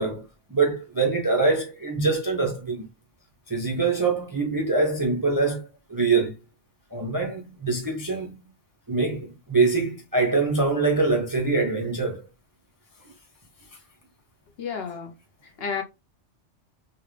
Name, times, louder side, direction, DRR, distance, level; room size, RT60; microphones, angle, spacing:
voice 1, 0.0-2.9 3.5-6.3 6.9-8.4 8.9-12.2, right 3 dB, 25° right, 0.5 m, -24 dB
voice 2, 14.6-15.1 15.4-15.8, left 6 dB, 60° left, 0.9 m, -31 dB
3.5 x 2.3 x 3.2 m
omnidirectional pair, 1.3 m